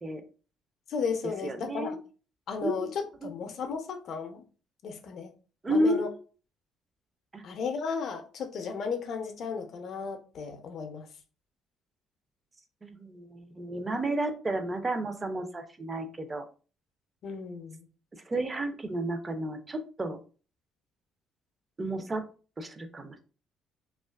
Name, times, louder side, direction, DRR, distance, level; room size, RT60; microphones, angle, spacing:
voice 1, 0.9-2.0 2.5-4.4 4.8-5.3 5.7-6.1 7.4-11.1 17.2-17.9, left 5 dB, 60° left, 0.5 m, -34 dB
voice 2, 1.4-2.0 2.6-2.9 3.2-3.6 5.6-6.1 7.3-7.4 12.8-16.4 18.3-20.2 21.8-22.2 22.6-23.2, right 1 dB, 25° right, 0.4 m, -32 dB
2.5 x 2.3 x 2.3 m
supercardioid pair, 80°, 0 cm